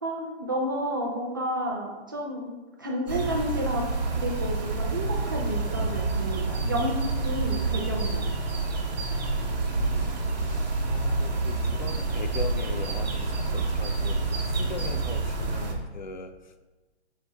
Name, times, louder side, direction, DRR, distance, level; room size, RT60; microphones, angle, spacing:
voice 1, 0.0-2.5 2.8-7.0 7.2-8.3, equal, 20° right, -2 dB, 0.5 m, -31 dB
sound 1, 3.1-15.7, right 3 dB, 40° right, 1.1 m, -28 dB
sound 2, 9.3-15.2, left 1 dB, 10° left, 1.3 m, -42 dB
voice 2, 9.4-10.2 10.8-16.6, left 4 dB, 40° left, 8 dB, 0.5 m, -39 dB
11.5 x 4.6 x 3.4 m, 1.2 s
hypercardioid pair, 175°, 34 cm